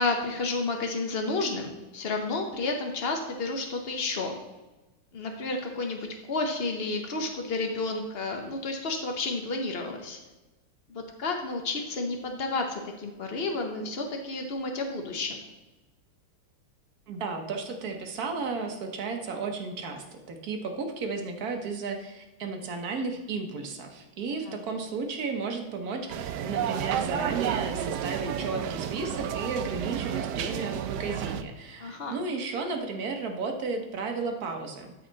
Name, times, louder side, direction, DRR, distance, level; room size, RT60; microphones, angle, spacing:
voice 1, 0.0-4.4 5.1-10.2 10.9-15.4 24.5-24.6 31.8-32.1, left 3 dB, 90° left, 3 dB, 0.5 m, -31 dB
voice 2, 17.1-34.9, right 4 dB, 50° right, 3 dB, 1.4 m, -33 dB
sound 1, 26.1-31.4, right 9 dB, 85° right, 0.9 m, -31 dB
12.5 x 4.3 x 4.0 m, 1.1 s
omnidirectional pair, 2.4 m